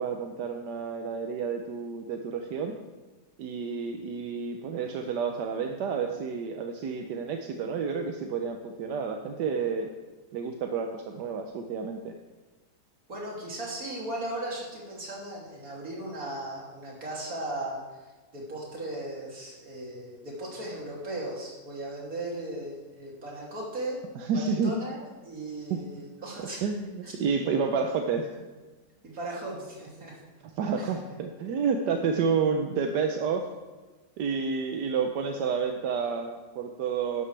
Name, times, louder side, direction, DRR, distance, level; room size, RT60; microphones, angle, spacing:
voice 1, 0.0-2.7 3.4-9.9 10.3-12.1 24.1-24.7 25.7-25.8 26.4-28.3 30.6-33.5 34.2-37.2, right 5 dB, 85° right, 4 dB, 1.4 m, -30 dB
voice 2, 13.1-24.0 24.3-26.6 27.0-27.1 29.0-30.1 30.8-30.9, right 1 dB, 55° right, -4 dB, 3.2 m, -37 dB
12.5 x 11.0 x 3.3 m, 1.3 s
omnidirectional pair, 1.8 m